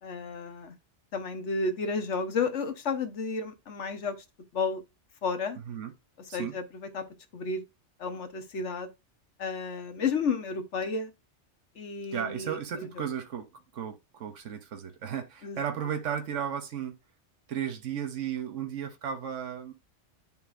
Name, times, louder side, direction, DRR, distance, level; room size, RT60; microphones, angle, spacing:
voice 1, 0.0-0.8 1.1-4.2 4.5-4.8 5.2-5.6 6.3-7.0 7.3-7.6 8.0-8.9 9.4-11.1 11.8-12.9 15.4-15.6, left 4 dB, 75° left, 1.4 m, -32 dB
voice 2, 12.1-17.0 17.5-19.7, right 8 dB, 80° right, 1.2 m, -34 dB
11.0 x 3.7 x 2.5 m
omnidirectional pair, 1.2 m